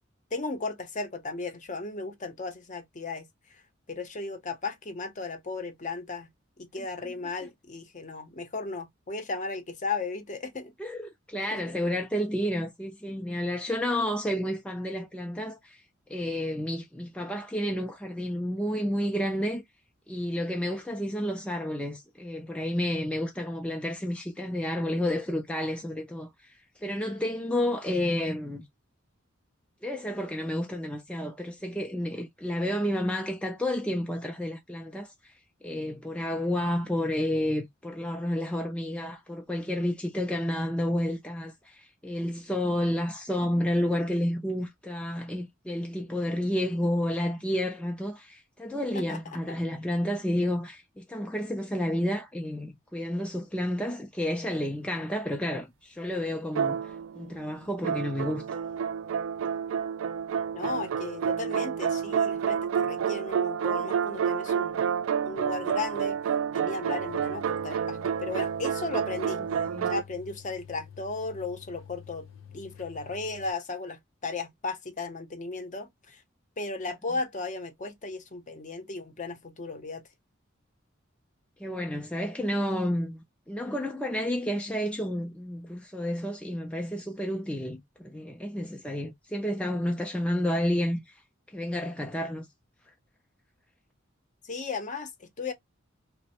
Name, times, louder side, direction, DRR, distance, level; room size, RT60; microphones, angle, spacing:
voice 1, 0.3-3.6 3.9-6.3 6.6-10.7 11.5-11.6 48.9-49.6 60.5-64.9 65.2-66.2 66.5-69.4 69.9-72.3 72.5-76.2 76.6-80.0 94.4-95.5, left 3 dB, 40° left, 0.7 m, -35 dB
voice 2, 10.8-15.8 16.1-19.6 20.1-26.5 26.8-28.6 29.8-35.3 35.6-58.4 69.7-69.9 81.6-91.1 91.5-92.5, left 1 dB, 5° left, 0.4 m, -30 dB
sound 1, 56.6-57.4 57.8-70.0, right 7 dB, 90° right, 0.3 m, -29 dB
sound 2, 67.0-73.5, left 8 dB, 80° left, 0.8 m, -49 dB
3.1 x 2.1 x 2.8 m
head